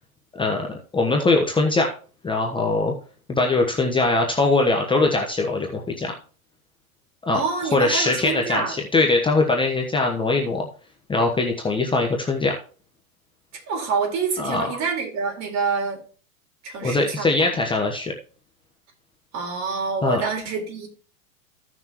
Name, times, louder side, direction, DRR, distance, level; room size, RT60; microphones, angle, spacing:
voice 1, 0.3-0.7 0.9-1.9 2.2-2.9 3.3-6.1 7.2-7.4 7.7-10.7 11.1-12.6 14.4-14.8 16.8-18.1 20.0-20.2, left 3 dB, 10° left, 1.1 m, -21 dB
voice 2, 7.3-8.8 13.7-16.0 16.6-17.5 19.3-20.9, right 5 dB, 40° right, 4.5 m, -27 dB
15.5 x 6.2 x 3.0 m
hypercardioid pair, 115°, 42 cm